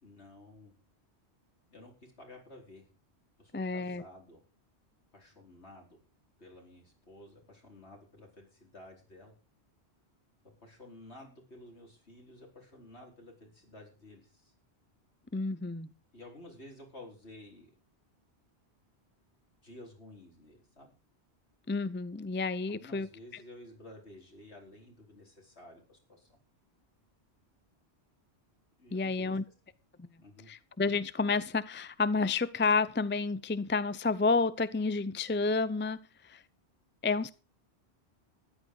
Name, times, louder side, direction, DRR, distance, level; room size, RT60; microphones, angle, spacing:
voice 1, 0.0-0.7 1.7-2.9 3.4-4.4 5.1-6.0 6.4-9.3 10.6-14.5 16.1-17.8 19.6-20.9 22.7-26.4 28.8-29.4 30.2-30.5, left 1 dB, 70° left, 4.8 m, -52 dB
voice 2, 3.5-4.0 15.3-15.9 21.7-23.1 28.9-29.4 30.0-30.1 30.5-36.4 37.0-37.3, left 4 dB, 15° left, 0.5 m, -30 dB
13.5 x 11.0 x 4.9 m
omnidirectional pair, 1.1 m